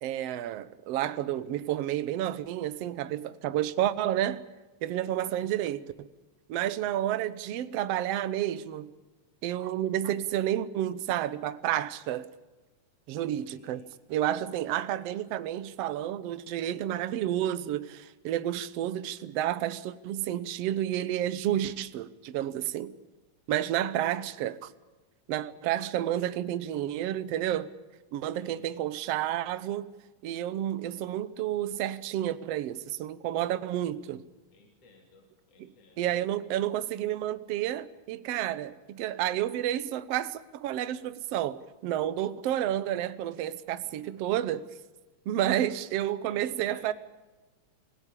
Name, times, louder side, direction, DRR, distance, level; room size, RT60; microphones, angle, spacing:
voice 1, 0.0-4.4 4.8-6.1 6.5-8.9 9.4-12.3 13.1-13.8 14.1-22.9 23.5-24.7 25.3-27.7 28.1-29.9 30.2-34.2 36.0-44.7 45.3-46.9, right 12 dB, 65° right, 1.8 m, -30 dB
voice 2, 5.0-5.5 13.3-13.9 24.2-24.4 28.3-28.8 34.5-36.1 43.8-44.3 45.4-45.8 46.3-46.9, left 3 dB, 55° left, 4.1 m, -58 dB
27.0 x 17.0 x 8.5 m
omnidirectional pair, 3.4 m